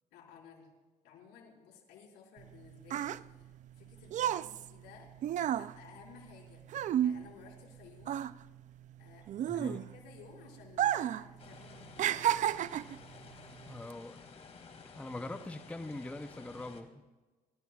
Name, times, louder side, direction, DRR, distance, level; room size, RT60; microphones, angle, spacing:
voice 1, 0.1-0.7 1.0-5.1 5.6-8.2 9.0-9.3 9.5-12.3, left 6 dB, 85° left, -2 dB, 5.1 m, -56 dB
sound 1, 2.4-7.7 8.0-10.2 10.7-11.3 11.5-13.0 13.7-13.9, right 11 dB, 45° right, 0.4 m, -32 dB
voice 2, 9.5-9.8 13.7-14.2 14.9-17.0, left 2 dB, 10° left, 8 dB, 0.6 m, -42 dB
sound 2, 11.4-16.8, left 5 dB, 40° left, 2.2 m, -53 dB
29.0 x 13.5 x 2.4 m, 1.2 s
cardioid pair, 110°, 17 cm